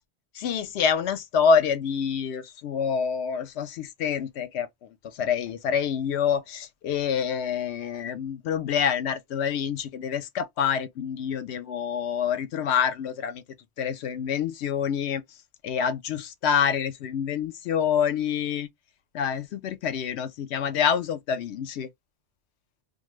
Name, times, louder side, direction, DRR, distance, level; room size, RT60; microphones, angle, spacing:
voice 1, 0.3-13.4 13.8-15.2 15.6-18.7 19.1-21.9, left 7 dB, 75° left, 0.8 m, -27 dB
2.6 x 2.4 x 3.0 m
omnidirectional pair, 1.2 m